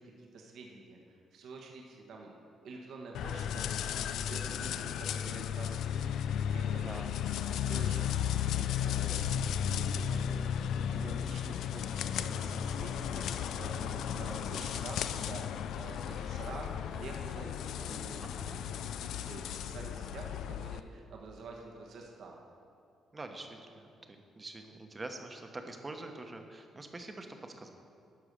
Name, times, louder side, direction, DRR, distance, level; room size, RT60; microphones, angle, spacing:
voice 1, 0.0-6.2 6.5-7.3 7.6-10.4 10.7-18.3 18.6-22.4, right 3 dB, 75° right, 0 dB, 1.3 m, -48 dB
sound 1, 3.1-20.8, left 9 dB, 80° left, 0.3 m, -34 dB
voice 2, 6.8-7.1 18.2-18.6 23.1-23.9 24.3-27.7, right 2 dB, 25° right, 5 dB, 1.0 m, -45 dB
11.5 x 4.8 x 6.7 m, 2.4 s
cardioid pair, 90°, 0 cm